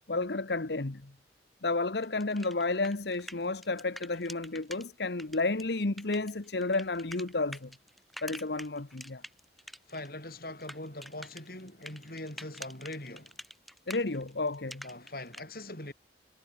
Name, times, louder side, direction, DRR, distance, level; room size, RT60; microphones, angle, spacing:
voice 1, 0.1-1.1 1.6-7.7 8.2-9.2 13.9-14.8, left 3 dB, 70° left, 1.2 m, -31 dB
sound 1, 2.0-4.8 5.2-10.1 10.3-15.4, equal, ahead, 5.0 m, -47 dB
voice 2, 9.9-13.4 14.8-15.9, left 1 dB, 55° left, 6.2 m, -42 dB
head